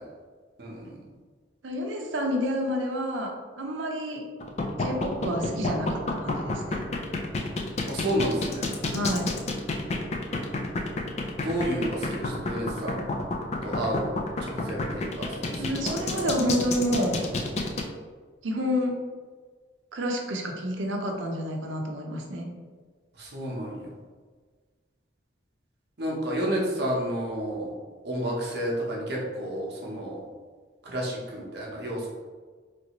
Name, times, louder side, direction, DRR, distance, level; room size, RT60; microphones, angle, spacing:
voice 1, 1.6-4.3 4.8-6.8 8.9-9.3 15.6-17.2 18.4-19.0 19.9-22.5, equal, 90° right, 2 dB, 0.6 m, -29 dB
sound 1, 4.4-17.8, left 2 dB, 35° left, 0.3 m, -29 dB
voice 2, 7.9-8.7 11.4-13.0 13.6-14.1 14.4-16.0 23.2-23.9 26.0-27.7 28.0-30.2 30.8-32.1, right 1 dB, 60° right, -3 dB, 0.8 m, -31 dB
3.2 x 2.6 x 2.9 m, 1.5 s
head